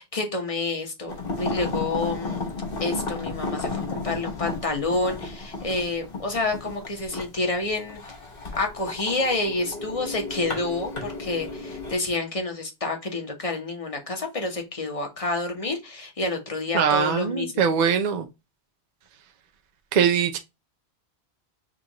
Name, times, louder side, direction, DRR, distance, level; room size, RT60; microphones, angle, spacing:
voice 1, 0.0-2.4 2.8-8.0 8.6-17.7, left 2 dB, 35° left, 1.1 m, -28 dB
sound 1, 1.1-11.9, left 3 dB, 60° left, 1.3 m, -33 dB
voice 2, 16.7-18.3 19.9-20.4, right 7 dB, 50° right, 0.6 m, -22 dB
6.3 x 2.5 x 2.9 m
omnidirectional pair, 1.1 m